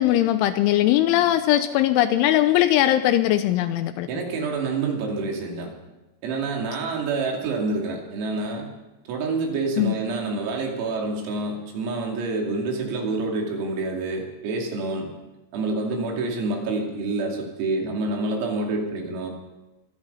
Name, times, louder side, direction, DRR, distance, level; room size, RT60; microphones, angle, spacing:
voice 1, 0.0-4.1 9.8-9.9, left 13 dB, 80° left, 10 dB, 2.9 m, -20 dB
voice 2, 4.1-5.7 6.2-8.7 9.1-15.1 15.5-19.3, right 3 dB, 90° right, 0 dB, 5.5 m, -27 dB
24.0 x 11.0 x 5.6 m, 1.1 s
omnidirectional pair, 5.9 m